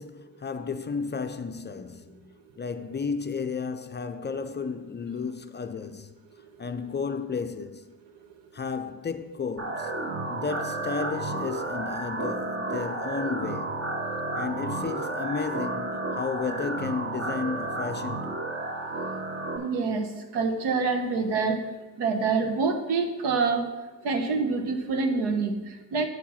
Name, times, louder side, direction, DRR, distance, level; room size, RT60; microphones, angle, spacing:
voice 1, 0.0-6.1 6.6-7.9 8.5-9.9 10.3-13.8 14.4-18.4, left 5 dB, 25° left, 0.5 m, -33 dB
sound 1, 9.6-19.6, right 2 dB, 30° right, 1.4 m, -32 dB
voice 2, 19.4-21.7 22.0-26.1, right 4 dB, 75° right, 1.3 m, -27 dB
8.0 x 4.6 x 7.1 m
supercardioid pair, 70°, 42 cm